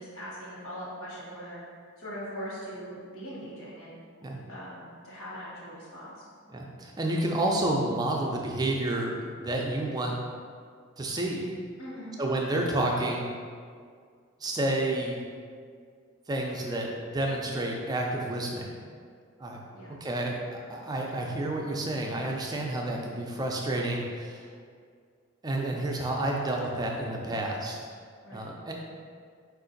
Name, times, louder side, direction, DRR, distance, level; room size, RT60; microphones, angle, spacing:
voice 1, 0.0-1.6 2.0-4.0 4.5-6.3 11.8-12.1 19.7-20.0 28.2-28.5, equal, 70° left, -8 dB, 1.3 m, -41 dB
voice 2, 6.5-10.2 11.0-11.6 12.2-13.2 14.4-15.2 16.3-18.7 19.4-19.6 19.9-24.5 25.4-27.8 28.3-28.7, right 1 dB, 20° right, 0 dB, 0.4 m, -30 dB
4.7 x 2.5 x 3.8 m, 2.1 s
head